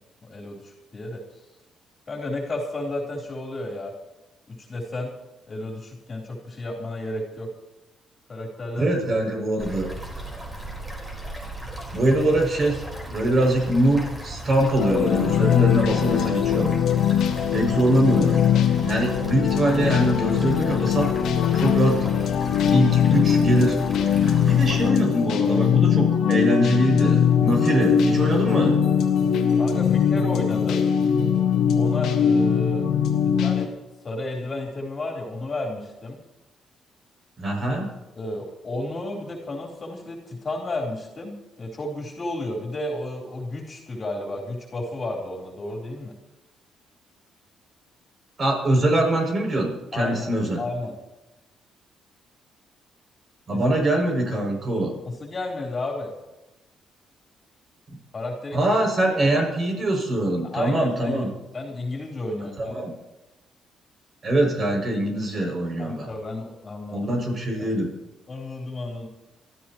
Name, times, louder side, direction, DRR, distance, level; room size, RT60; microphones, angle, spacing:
voice 1, 0.2-1.2 2.1-3.9 4.5-5.1 5.5-7.5 8.3-9.0 24.5-24.7 29.6-30.8 31.7-32.9 33.2-33.7 34.0-36.2 38.2-46.1 49.9-50.3 50.6-51.0 53.5-53.6 55.1-56.1 58.1-58.8 59.0-59.5 60.4-61.3 61.5-62.8 65.8-67.1 67.6-67.7 68.3-69.1, left 2 dB, 35° left, 0 dB, 4.0 m, -32 dB
voice 2, 8.7-9.9 11.9-16.7 17.5-18.4 18.8-21.1 21.5-22.0 22.7-23.8 24.4-28.8 37.4-37.9 48.4-50.6 53.5-54.9 58.5-61.3 62.6-62.9 64.2-66.1 66.9-67.9, right 1 dB, 40° right, 0 dB, 7.2 m, -23 dB
sound 1, 9.6-24.9, right 1 dB, 15° right, 4.7 m, -36 dB
sound 2, 14.8-33.7, left 8 dB, 80° left, 1.8 m, -21 dB
27.0 x 13.5 x 3.2 m, 1.0 s
cardioid pair, 90°, 0 cm